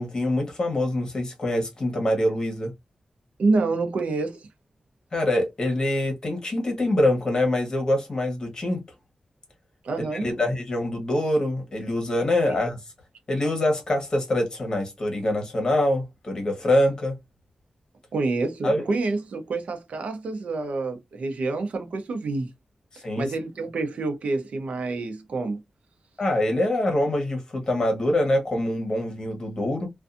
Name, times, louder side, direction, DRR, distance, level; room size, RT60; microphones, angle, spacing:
voice 1, 0.0-2.7 5.1-8.8 10.0-12.8 13.3-17.2 18.6-18.8 22.9-23.3 26.2-29.9, left 1 dB, 35° left, 1.0 m, -24 dB
voice 2, 3.4-4.5 9.8-10.3 18.1-22.5 23.2-25.6, right 3 dB, 80° right, 0.6 m, -27 dB
2.6 x 2.3 x 2.5 m
wide cardioid pair, 175°, 2 cm